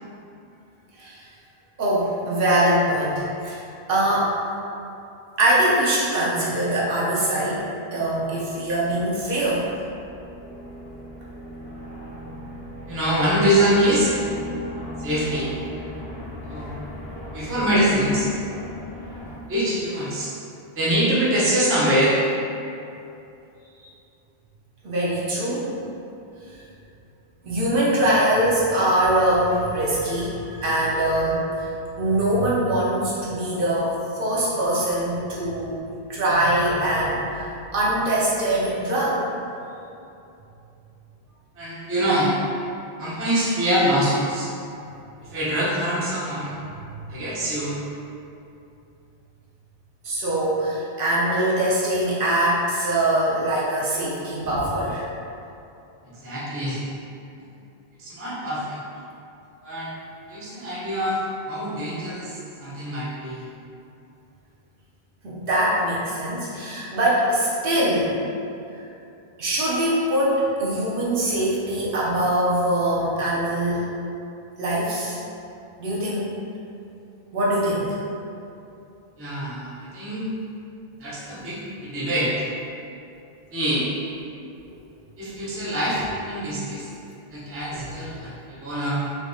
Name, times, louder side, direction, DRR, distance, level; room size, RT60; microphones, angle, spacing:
voice 1, 1.8-3.6 3.9-4.3 5.4-7.7 7.9-9.7 24.8-25.7 27.4-31.7 32.0-35.8 36.1-39.2 50.0-55.0 65.2-68.1 69.4-73.8 74.6-75.2 75.8-76.3 77.3-78.0 87.7-88.0, right 1 dB, 60° right, -7 dB, 0.8 m, -23 dB
sound 1, 8.7-19.4, left 1 dB, 60° left, 1.1 m, -38 dB
voice 2, 12.9-14.1 15.0-15.5 16.5-16.7 17.3-18.3 19.5-20.3 20.8-22.2 41.6-42.4 43.0-44.5 45.2-46.6 47.1-47.8 56.1-56.8 58.0-58.8 59.6-59.9 60.3-61.2 61.5-63.5 79.2-80.3 81.0-82.4 83.5-83.8 85.2-86.9 87.3-89.1, equal, 20° right, -8 dB, 0.4 m, -24 dB
3.4 x 2.7 x 2.6 m, 2.7 s
omnidirectional pair, 1.1 m